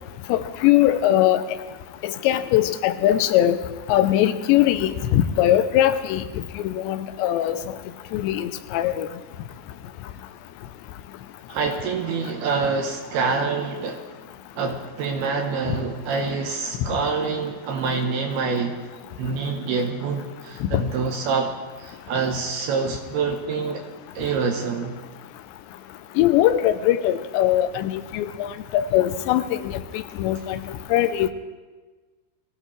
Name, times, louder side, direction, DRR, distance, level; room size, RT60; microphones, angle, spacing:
voice 1, 0.3-1.4 2.0-3.6 3.9-6.2 6.6-7.8 8.1-9.1 20.7-20.8 26.2-30.6 30.9-31.3, left 12 dB, 85° left, 11 dB, 2.9 m, -21 dB
voice 2, 11.5-14.1 14.6-18.8 19.2-21.5 21.8-23.8 24.1-25.0, right 4 dB, 75° right, 2 dB, 2.8 m, -26 dB
22.5 x 15.5 x 3.2 m, 1.3 s
omnidirectional pair, 5.0 m